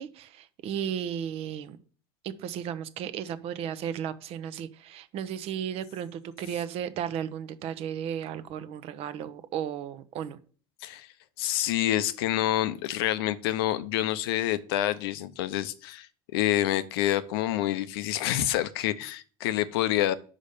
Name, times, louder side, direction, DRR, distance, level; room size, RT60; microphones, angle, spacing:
voice 1, 0.0-1.8 2.2-10.4, right 9 dB, 55° right, 14 dB, 0.8 m, -34 dB
voice 2, 11.4-16.1 16.3-20.1, left 13 dB, 85° left, 14 dB, 0.6 m, -27 dB
5.6 x 5.1 x 6.6 m, 0.42 s
supercardioid pair, 115°, 12 cm